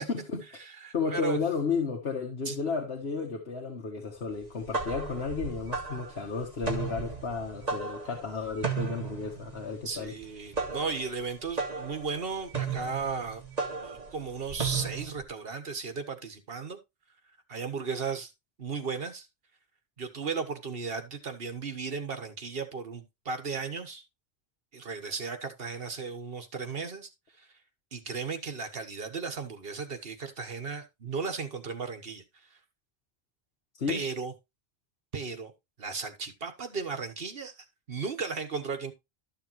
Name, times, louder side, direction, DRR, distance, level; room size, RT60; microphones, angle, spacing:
voice 1, 0.0-0.4 0.9-10.1 33.7-34.0, left 4 dB, 90° left, 1.6 m, -32 dB
voice 2, 0.6-1.4 2.5-2.6 9.8-13.4 13.8-16.8 17.5-18.3 18.6-19.3 20.0-24.0 24.7-27.1 27.4-27.5 27.9-32.2 33.9-34.3 35.1-35.5 35.8-37.5 37.9-38.9, right 5 dB, 70° right, 1.5 m, -35 dB
sound 1, 4.4-15.2, right 5 dB, 40° right, 1.9 m, -35 dB
12.5 x 6.7 x 3.1 m
omnidirectional pair, 1.0 m